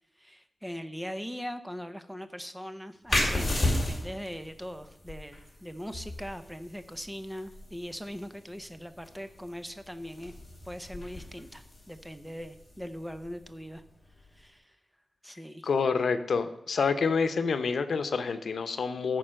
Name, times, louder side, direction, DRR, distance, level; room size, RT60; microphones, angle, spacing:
voice 1, 0.2-10.3 10.7-13.8 14.3-14.8 15.2-15.7, equal, 5° right, 10 dB, 0.7 m, -41 dB
sound 1, 3.1-14.4, left 1 dB, 20° left, 2.4 m, -35 dB
voice 2, 15.6-19.2, left 5 dB, 80° left, 10 dB, 0.8 m, -28 dB
13.5 x 4.6 x 6.3 m, 0.88 s
wide cardioid pair, 150°, 0 cm